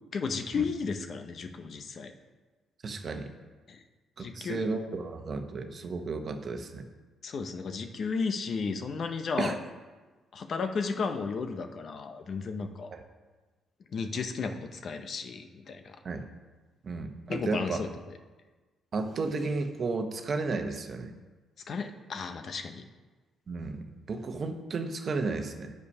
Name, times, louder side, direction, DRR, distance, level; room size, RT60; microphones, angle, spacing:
voice 1, 0.1-2.1 3.7-3.8 4.2-4.9 7.2-9.6 10.3-12.9 13.9-16.0 17.3-17.9 21.7-22.8, left 5 dB, 55° left, 7 dB, 0.7 m, -34 dB
voice 2, 2.8-3.3 4.2-6.9 9.4-9.6 12.9-13.0 16.0-16.2 16.8-17.8 18.9-21.1 23.5-25.7, right 3 dB, 45° right, 6 dB, 1.0 m, -33 dB
8.3 x 6.9 x 5.5 m, 1.3 s
cardioid pair, 90°, 0 cm